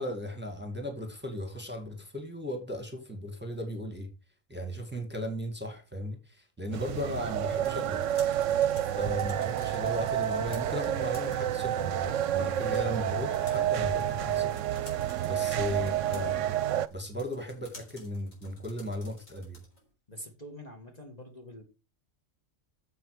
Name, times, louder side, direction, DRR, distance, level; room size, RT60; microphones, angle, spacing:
voice 1, 0.0-4.1 4.5-8.0 8.9-14.5 15.2-16.4 16.9-19.6, left 1 dB, 10° right, 2.1 m, -36 dB
sound 1, 6.7-16.9, right 11 dB, 70° right, 1.0 m, -29 dB
sound 2, 7.6-19.9, left 2 dB, 90° left, 4.4 m, -54 dB
voice 2, 20.1-21.6, equal, 30° left, 2.0 m, -46 dB
9.2 x 7.3 x 4.8 m
omnidirectional pair, 1.3 m